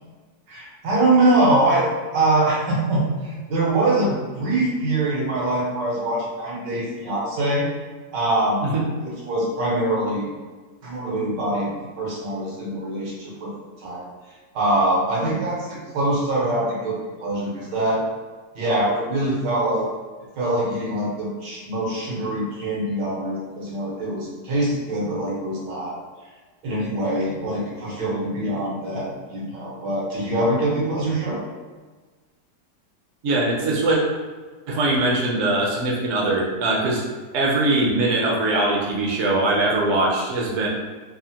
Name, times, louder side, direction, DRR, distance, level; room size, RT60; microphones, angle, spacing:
voice 1, 0.5-7.7 8.1-8.7 9.0-10.3 10.8-13.5 13.8-14.1 14.5-18.0 18.5-19.9 20.4-26.0 26.6-31.4, right 1 dB, 85° right, -5 dB, 1.6 m, -23 dB
voice 2, 33.2-34.0 34.7-37.0 37.3-40.7, right 2 dB, 65° right, -2 dB, 0.7 m, -21 dB
3.5 x 2.0 x 2.7 m, 1.4 s
omnidirectional pair, 1.8 m